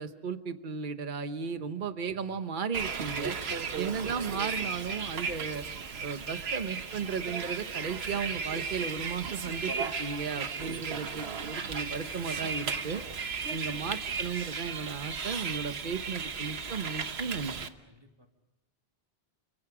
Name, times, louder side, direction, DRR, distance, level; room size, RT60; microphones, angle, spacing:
voice 1, 0.0-3.4 3.8-5.6 6.0-13.0 13.5-17.7, right 5 dB, 50° right, 9 dB, 1.2 m, -35 dB
voice 2, 1.5-1.9 3.5-3.7 13.2-13.3 17.9-18.3, left 1 dB, 25° right, 4 dB, 2.0 m, -62 dB
Bus, 2.7-17.7, right 5 dB, 75° right, 1.4 m, -35 dB
30.0 x 26.0 x 5.0 m, 1.1 s
omnidirectional pair, 1.1 m